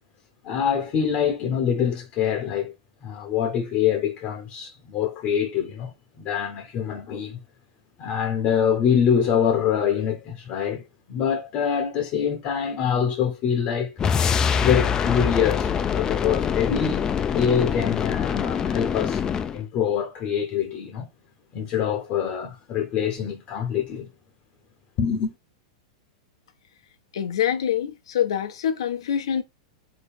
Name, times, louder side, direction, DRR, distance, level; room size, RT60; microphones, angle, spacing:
voice 1, 0.4-2.7 3.0-7.4 8.0-10.8 11.1-13.9 14.6-17.0 17.3-19.2 19.5-21.1 21.5-24.1 25.0-25.3, left 8 dB, 40° left, 0.8 m, -25 dB
sound 1, 14.0-19.6, left 7 dB, 25° left, 0.3 m, -24 dB
voice 2, 27.1-29.4, left 9 dB, 75° left, 0.6 m, -25 dB
4.0 x 2.9 x 3.3 m
hypercardioid pair, 105°, 3 cm